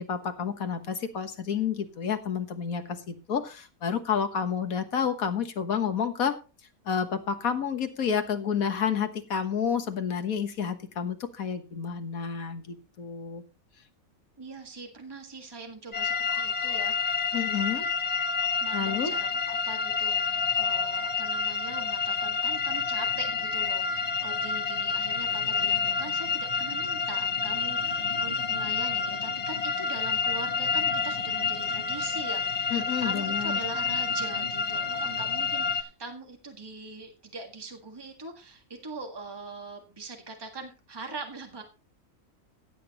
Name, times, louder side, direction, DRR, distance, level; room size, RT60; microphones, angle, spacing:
voice 1, 0.0-6.4 6.8-13.4 17.3-17.8 18.7-19.1 32.7-33.6, left 7 dB, 85° left, 8 dB, 1.7 m, -30 dB
voice 2, 14.4-16.9 18.6-32.7 33.0-41.6, right 3 dB, 15° right, 3 dB, 1.8 m, -42 dB
sound 1, 15.9-35.8, left 5 dB, 30° left, 1.0 m, -29 dB
16.0 x 8.8 x 3.0 m, 0.31 s
omnidirectional pair, 1.4 m